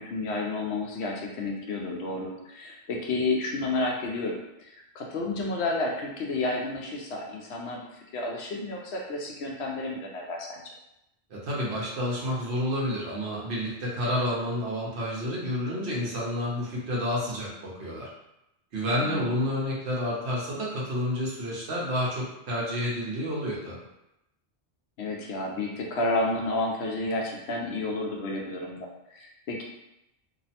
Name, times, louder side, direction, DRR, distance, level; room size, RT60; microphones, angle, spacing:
voice 1, 0.0-7.8 8.1-10.6 19.0-19.4 25.0-29.6, left 2 dB, 75° left, 0 dB, 0.9 m, -31 dB
voice 2, 11.3-18.1 18.7-23.8, equal, 75° right, -4 dB, 1.1 m, -29 dB
2.8 x 2.0 x 2.7 m, 0.86 s
omnidirectional pair, 1.1 m